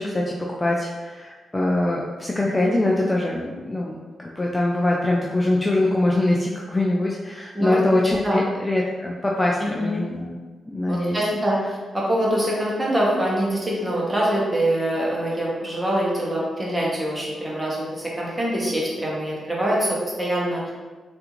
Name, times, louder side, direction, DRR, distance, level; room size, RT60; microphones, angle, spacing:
voice 1, 0.0-10.4 10.7-11.3, left 1 dB, 15° left, -3 dB, 0.3 m, -23 dB
voice 2, 9.6-9.9 10.9-20.7, right 1 dB, 15° right, -5 dB, 0.9 m, -24 dB
3.3 x 2.5 x 3.0 m, 1.3 s
cardioid pair, 110°, 0 cm